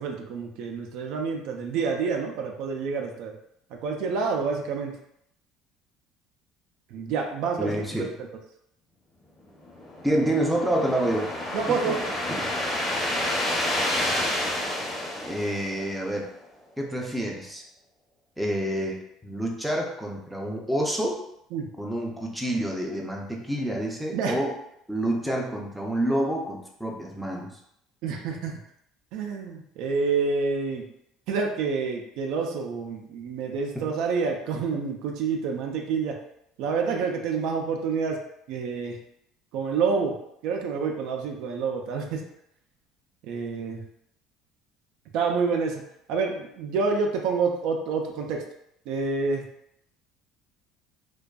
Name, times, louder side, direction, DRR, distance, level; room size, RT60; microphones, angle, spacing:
voice 1, 0.0-3.3 3.7-4.9 6.9-7.7 8.0-8.1 11.5-12.0 21.5-21.7 24.1-24.4 28.0-28.6 29.1-30.9 31.3-36.2 36.6-38.2 38.5-39.0 39.5-40.2 40.4-42.2 43.2-43.8 45.1-45.8 46.1-48.4 48.9-49.4, right 5 dB, 70° right, 2 dB, 0.4 m, -28 dB
voice 2, 7.6-8.1 10.0-11.3 11.7-12.0 12.4-12.5 15.2-16.2 16.8-17.6 18.4-21.2 21.8-24.5 24.9-27.5 33.8-33.9, right 1 dB, ahead, -1 dB, 0.5 m, -28 dB
sound 1, 9.6-16.1, left 1 dB, 25° left, 0.8 m, -29 dB
2.5 x 2.2 x 2.3 m, 0.75 s
cardioid pair, 115°, 0 cm